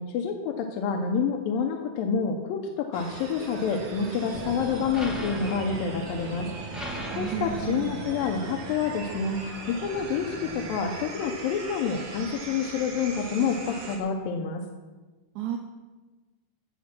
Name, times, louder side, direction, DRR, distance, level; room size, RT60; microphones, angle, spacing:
voice 1, 0.0-6.5 6.7-14.6, left 6 dB, 85° left, 2 dB, 2.6 m, -28 dB
sound 1, 2.9-14.0, right 3 dB, 50° right, 2.1 m, -40 dB
sound 2, 4.3-11.0, right 1 dB, ahead, 1.1 m, -39 dB
voice 2, 7.1-8.0 15.4-15.6, right 8 dB, 75° right, 4 dB, 1.9 m, -32 dB
15.5 x 7.3 x 5.9 m, 1.2 s
omnidirectional pair, 4.0 m